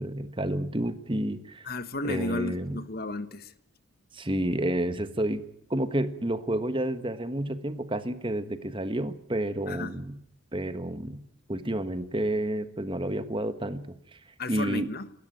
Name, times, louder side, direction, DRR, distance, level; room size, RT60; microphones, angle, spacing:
voice 1, 0.0-1.7 2.0-2.8 4.1-5.4 5.7-10.1 10.5-11.2 11.5-14.2 14.5-14.9, right 1 dB, 25° right, 1.4 m, -30 dB
voice 2, 1.6-3.5 9.7-9.9 14.4-15.1, left 2 dB, 45° left, 1.3 m, -33 dB
28.0 x 13.5 x 9.2 m
head